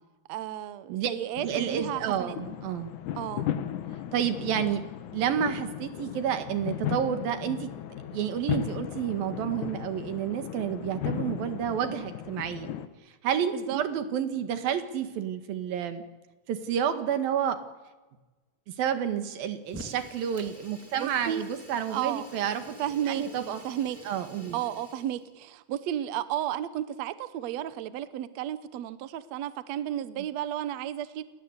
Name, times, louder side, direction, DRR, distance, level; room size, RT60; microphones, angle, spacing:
voice 1, 0.3-2.4 3.2-3.5 13.5-13.8 20.9-21.4 21.9-22.3 22.8-24.0 24.5-31.2, right 11 dB, 90° right, 14 dB, 1.5 m, -33 dB
sound 1, 1.3-12.9, left 10 dB, 65° left, 2.2 m, -36 dB
voice 2, 1.4-2.9 4.1-4.8 5.1-7.7 8.1-12.7 13.2-16.0 16.5-17.6 18.8-22.8 23.1-23.6 24.1-24.6, right 8 dB, 65° right, 9 dB, 3.4 m, -30 dB
Fire, 19.6-25.3, equal, 5° right, 1.2 m, -47 dB
29.5 x 19.0 x 8.2 m, 1.2 s
omnidirectional pair, 4.7 m